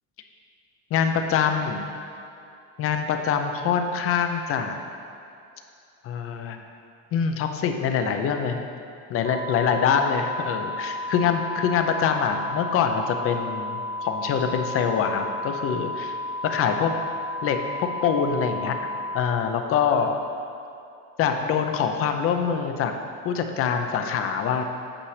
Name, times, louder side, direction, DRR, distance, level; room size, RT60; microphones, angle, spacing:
voice 1, 0.9-1.9 2.8-4.8 6.0-6.6 7.1-8.6 9.1-16.1 16.4-16.9 17.4-20.1 21.2-22.9 23.2-24.6, left 7 dB, 40° left, 5 dB, 0.6 m, -24 dB
sound 1, 9.3-19.3, left 1 dB, 65° right, 1.4 m, -32 dB
8.6 x 6.6 x 3.3 m, 2.6 s
cardioid pair, 145°, 35 cm